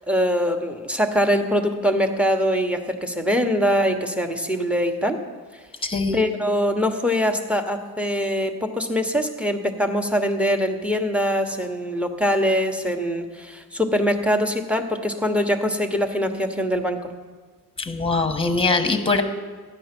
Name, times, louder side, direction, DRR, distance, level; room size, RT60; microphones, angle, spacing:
voice 1, 0.0-5.2 5.5-5.6 6.1-17.0, equal, 5° right, 5 dB, 1.1 m, -23 dB
voice 2, 5.8-6.2 17.8-19.2, left 3 dB, 15° left, 6 dB, 1.2 m, -22 dB
13.0 x 9.7 x 6.0 m, 1.5 s
cardioid pair, 105°, 34 cm